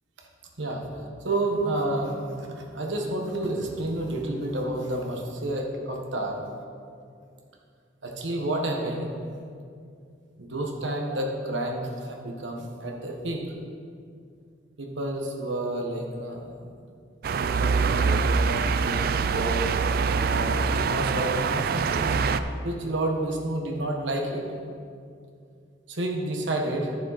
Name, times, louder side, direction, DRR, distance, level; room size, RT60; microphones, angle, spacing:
voice 1, 1.2-6.4 8.0-9.1 10.4-13.4 14.8-16.4 17.4-22.1 22.6-24.5 25.9-27.0, right 1 dB, 80° right, 1 dB, 1.3 m, -30 dB
sound 1, 17.2-22.4, right 5 dB, 50° right, 0.3 m, -24 dB
11.5 x 6.8 x 4.1 m, 2.3 s
head